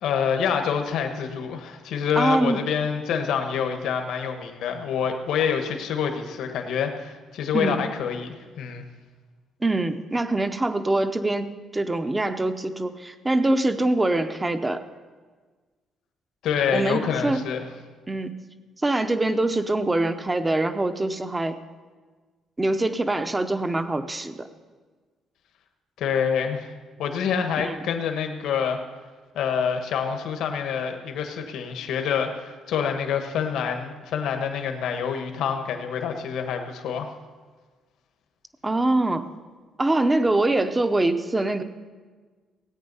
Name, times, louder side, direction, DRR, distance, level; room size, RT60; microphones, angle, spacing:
voice 1, 0.0-8.8 16.4-17.7 26.0-26.7 27.0-28.8 29.3-37.1, left 7 dB, 70° left, 5 dB, 1.4 m, -27 dB
voice 2, 2.2-2.6 7.5-7.8 9.6-11.5 11.7-14.8 16.7-17.4 18.1-18.3 18.8-21.6 22.6-24.5 27.6-27.8 38.6-39.2 39.8-41.6, right 2 dB, 10° right, 10 dB, 0.6 m, -24 dB
17.5 x 8.8 x 5.5 m, 1.4 s
cardioid pair, 165°, 0 cm